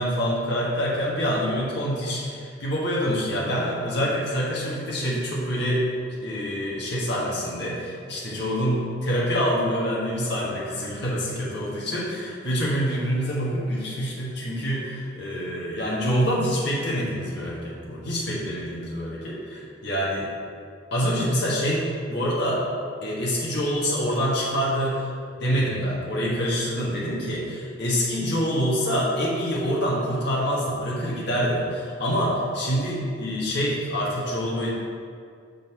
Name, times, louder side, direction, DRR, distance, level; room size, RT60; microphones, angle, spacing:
voice 1, 0.0-20.3 20.9-22.7 23.0-25.1 25.4-34.7, equal, 60° left, -6 dB, 1.4 m, -26 dB
6.3 x 4.1 x 5.4 m, 2.3 s
head